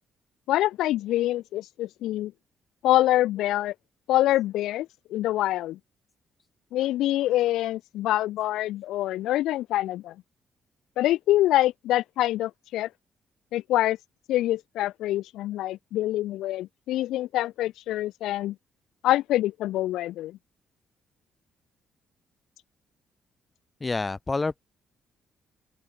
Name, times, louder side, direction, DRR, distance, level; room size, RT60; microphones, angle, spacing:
voice 1, 0.5-2.3 2.8-3.7 4.1-5.8 6.7-10.1 11.0-12.9 13.5-14.0 14.3-18.5 19.0-20.4, left 14 dB, 85° left, 1.3 m, -25 dB
voice 2, 23.8-24.6, left 3 dB, 25° left, 1.6 m, -28 dB
open air
cardioid pair, 90°, 0 cm